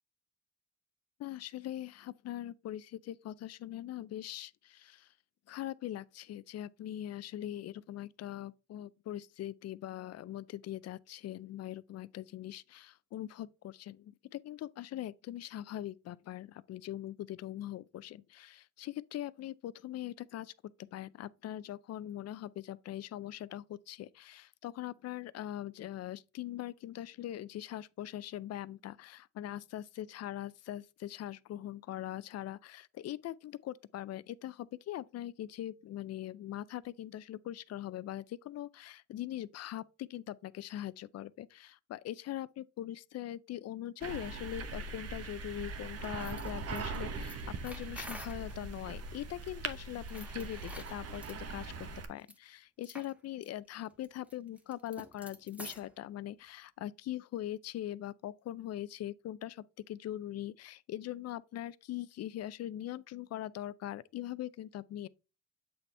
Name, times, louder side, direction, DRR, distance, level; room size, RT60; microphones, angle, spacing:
voice 1, 1.2-5.1 5.5-20.5 20.9-65.1, left 13 dB, 55° left, 0.4 m, -42 dB
sound 1, 44.0-52.1, right 4 dB, 55° right, 1.0 m, -41 dB
sound 2, 46.0-48.6 50.0-51.4 52.2-52.4 52.8-53.1 53.4-53.5 53.9-55.9, equal, 5° right, 1.1 m, -49 dB
7.6 x 4.2 x 3.3 m
cardioid pair, 90°, 30 cm